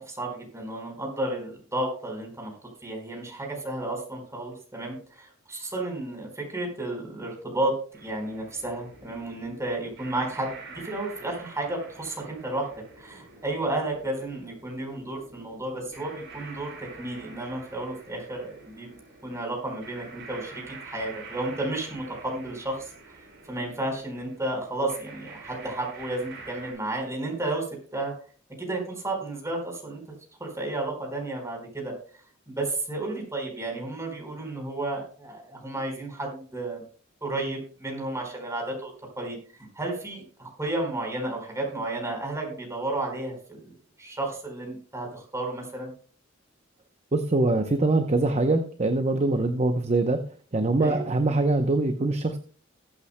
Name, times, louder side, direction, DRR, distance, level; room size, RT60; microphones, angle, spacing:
voice 1, 0.0-2.5 2.8-7.7 8.0-12.7 13.0-19.0 19.2-22.8 23.5-27.6 27.9-28.1 28.6-30.0 30.4-31.9 32.5-36.8 37.2-38.9 39.2-39.4 39.8-43.7 44.0-45.9 50.8-51.1, right 2 dB, 15° right, 1 dB, 4.4 m, -32 dB
sound 1, 7.9-26.7, right 3 dB, 60° right, 6.2 m, -47 dB
voice 2, 47.1-50.2 50.5-52.4, right 2 dB, 35° right, 7 dB, 0.7 m, -23 dB
21.0 x 8.5 x 2.2 m, 0.42 s
head